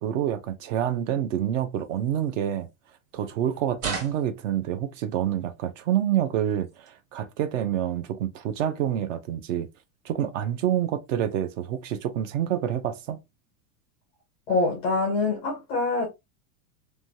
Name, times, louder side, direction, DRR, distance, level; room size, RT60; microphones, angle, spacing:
voice 1, 0.0-2.7 3.1-9.7 10.0-13.2, right 10 dB, 60° right, 0.6 m, -27 dB
sound 1, 1.7-3.3 3.7-5.3 5.8-7.1 7.5-7.9 8.2-8.3 8.6-9.0 9.5-9.6 10.0-10.5 10.8-11.9, right 4 dB, 85° right, 1.8 m, -42 dB
voice 2, 14.5-16.1, left 3 dB, 15° left, 0.3 m, -25 dB
3.2 x 2.2 x 2.5 m
supercardioid pair, 165°, 43 cm